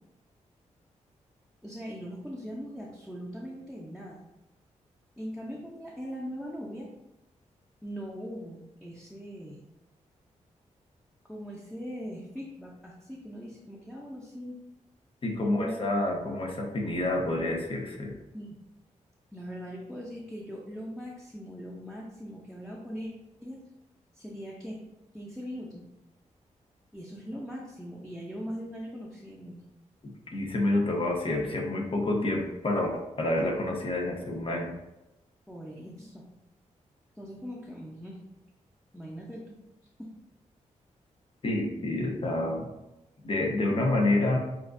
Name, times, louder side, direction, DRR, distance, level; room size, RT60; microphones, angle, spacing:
voice 1, 1.6-4.2 5.2-6.9 7.8-9.6 11.3-14.6 15.3-15.8 16.1-16.2 18.3-18.6 19.3-23.1 23.4-23.6 24.1-24.8 25.1-25.8 26.9-29.6 35.5-36.2 37.2-38.2 38.9-39.4 40.0-40.1, equal, ahead, -4 dB, 0.8 m, -40 dB
voice 2, 15.2-18.1 30.0-34.7 41.4-42.7 43.2-44.4, left 2 dB, 45° left, 1 dB, 1.0 m, -28 dB
7.2 x 2.5 x 2.6 m, 0.94 s
cardioid pair, 75°, 13 cm